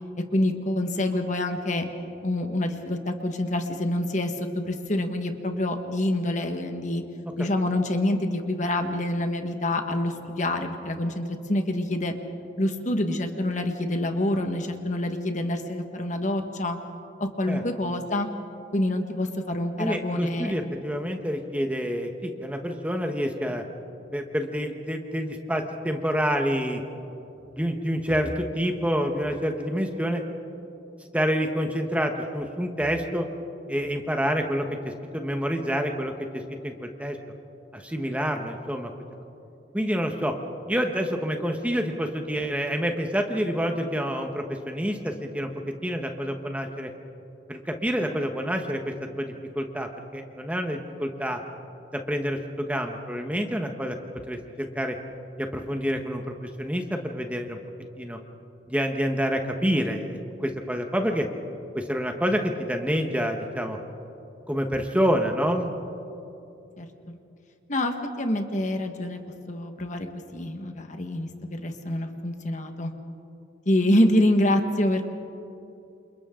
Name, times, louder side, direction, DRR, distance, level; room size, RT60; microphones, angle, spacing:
voice 1, 0.3-1.9 2.2-7.0 7.4-12.1 12.6-16.8 17.2-18.3 18.7-20.5 66.8-66.9 67.7-69.2 69.5-70.1 70.3-72.9 73.6-75.1, left 1 dB, 40° left, 5 dB, 1.5 m, -26 dB
voice 2, 19.8-23.6 24.1-26.8 27.5-30.2 31.1-33.3 33.7-37.2 37.7-38.9 39.7-40.4 40.7-45.5 45.8-46.9 47.5-51.4 51.9-54.0 54.3-54.9 55.4-57.6 58.0-58.2 58.7-61.3 61.7-63.8 64.5-65.7, equal, 5° right, 4 dB, 1.2 m, -28 dB
28.5 x 28.5 x 3.8 m, 2.8 s
head